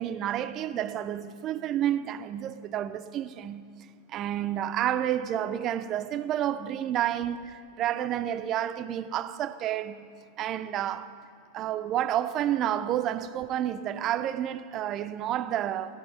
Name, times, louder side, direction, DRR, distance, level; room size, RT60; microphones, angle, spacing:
voice 1, 0.0-3.7 4.1-10.1 10.4-11.1 11.5-16.0, right 11 dB, 35° right, 0.4 m, -30 dB
13.0 x 5.4 x 7.2 m
figure-of-eight pair, 90°, 0 cm